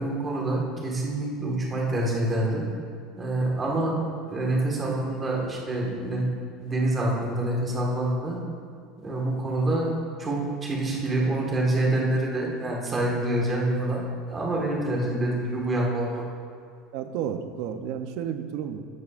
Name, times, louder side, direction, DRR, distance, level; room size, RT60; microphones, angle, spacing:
voice 1, 0.0-2.7 3.2-3.9 4.3-6.3 6.6-8.4 9.0-9.9 10.2-16.2, right 1 dB, 15° right, -3 dB, 1.6 m, -26 dB
voice 2, 16.9-18.8, right 8 dB, 55° right, 8 dB, 0.6 m, -32 dB
13.0 x 8.5 x 2.5 m, 2.3 s
cardioid pair, 170°, 0 cm